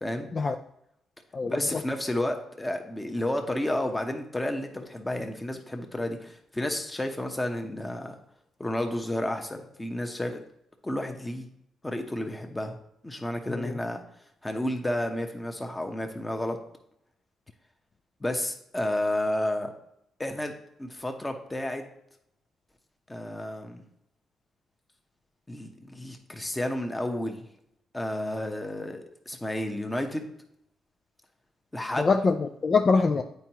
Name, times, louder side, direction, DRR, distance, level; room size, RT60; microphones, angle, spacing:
voice 1, 1.4-8.1 8.6-10.4 10.8-11.5 11.8-12.8 13.0-14.0 14.4-16.6 18.2-19.7 20.2-20.5 20.8-21.8 23.1-23.8 25.5-27.4 27.9-30.3 31.7-32.1, left 1 dB, 15° left, 5 dB, 1.0 m, -31 dB
voice 2, 32.0-33.2, left 4 dB, 40° left, 4 dB, 0.4 m, -24 dB
9.2 x 4.5 x 2.9 m, 0.79 s
cardioid pair, 90°, 0 cm